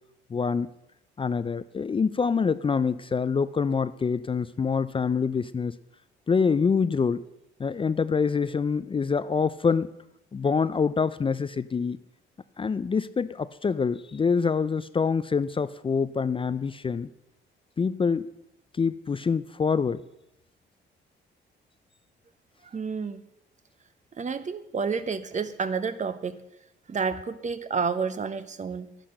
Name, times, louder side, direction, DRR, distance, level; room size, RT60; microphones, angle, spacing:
voice 1, 0.3-0.7 1.2-5.8 6.3-7.2 7.6-9.9 10.3-12.0 12.6-17.1 17.8-18.3 18.7-20.0, left 5 dB, 25° left, 14 dB, 0.5 m, -25 dB
voice 2, 22.7-23.3 24.1-26.4 26.9-29.0, right 5 dB, 40° right, 12 dB, 1.0 m, -30 dB
11.5 x 10.0 x 6.5 m, 0.85 s
cardioid pair, 90°, 20 cm